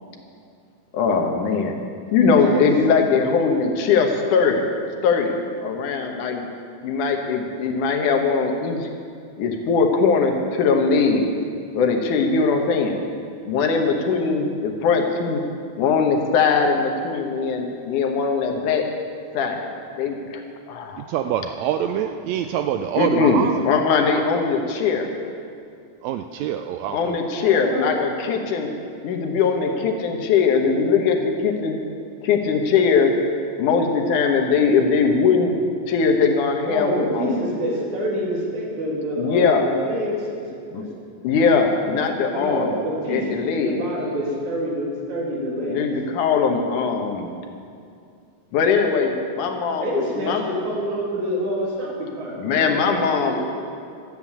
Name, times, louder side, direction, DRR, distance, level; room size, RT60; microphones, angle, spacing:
voice 1, 0.9-1.7 2.1-4.7 5.0-6.5 6.8-8.9 9.4-11.3 11.7-12.9 13.4-15.4 15.8-18.8 19.3-19.7 20.0-21.1 23.0-25.1 26.9-28.7 29.0-31.8 32.2-33.1 33.6-35.5 35.9-37.3 39.2-39.7 40.7-40.8 41.2-42.7 43.1-43.8 45.7-47.2 48.5-50.4 52.4-53.4, left 5 dB, 75° left, 3 dB, 2.6 m, -20 dB
voice 2, 2.4-2.8 27.2-28.1 36.6-40.3 40.7-40.9 42.3-45.8 49.8-53.4, equal, 65° right, -3 dB, 3.9 m, -27 dB
voice 3, 21.0-23.9 24.1-24.2 26.0-27.2, right 9 dB, 90° right, 7 dB, 1.5 m, -26 dB
12.5 x 9.0 x 8.4 m, 2.4 s
omnidirectional pair, 3.7 m